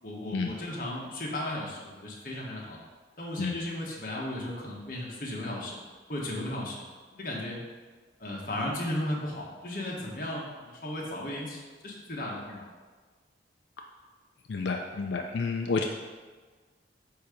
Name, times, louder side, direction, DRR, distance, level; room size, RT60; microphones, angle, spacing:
voice 1, 0.0-2.8 3.2-5.8 6.1-6.8 7.1-7.6 8.2-12.6, left 1 dB, 50° left, -3 dB, 1.3 m, -35 dB
voice 2, 14.5-15.8, left 4 dB, 85° left, 3 dB, 0.4 m, -30 dB
8.6 x 2.9 x 5.0 m, 1.4 s
head